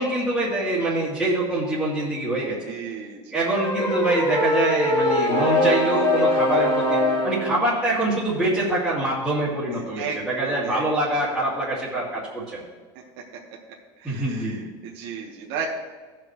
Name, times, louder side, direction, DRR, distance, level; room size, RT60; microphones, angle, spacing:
voice 1, 0.0-2.7 3.3-7.0 7.2-12.6 14.0-14.6, right 2 dB, ahead, -12 dB, 2.2 m, -25 dB
voice 2, 2.7-3.4 9.7-10.8 14.0-15.6, right 7 dB, 50° right, -2 dB, 1.3 m, -34 dB
sound 1, 3.5-7.6, left 1 dB, 40° left, 3.0 m, -22 dB
17.5 x 6.1 x 3.1 m, 1.4 s
cardioid pair, 170°, 13 cm